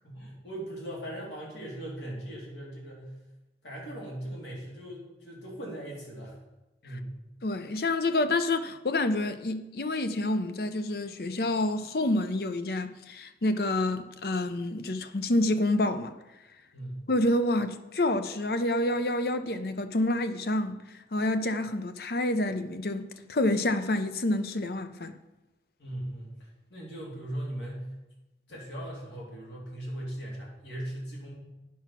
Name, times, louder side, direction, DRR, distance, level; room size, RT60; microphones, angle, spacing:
voice 1, 0.0-3.1 3.6-6.4 6.8-7.1 16.7-17.0 25.8-27.9 28.5-31.4, right 1 dB, 80° left, 3.4 m, -39 dB
voice 2, 7.4-16.1 17.1-20.8 21.1-25.1, left 1 dB, 60° left, 0.6 m, -28 dB
9.4 x 6.0 x 5.9 m
head